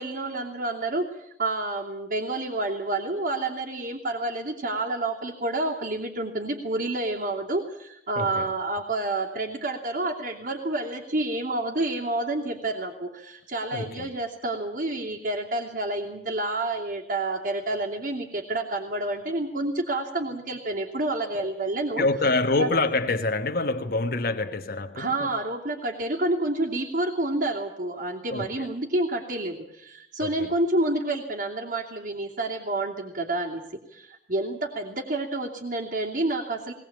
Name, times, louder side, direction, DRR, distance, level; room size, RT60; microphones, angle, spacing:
voice 1, 0.0-22.0 22.6-22.7 24.9-33.6 33.9-36.7, right 2 dB, 55° right, 2.9 m, -29 dB
voice 2, 8.2-8.5 13.7-14.1 21.4-21.5 22.0-25.3 28.3-28.7 30.2-30.5, left 3 dB, 55° left, 1.2 m, -26 dB
20.0 x 19.5 x 8.7 m
head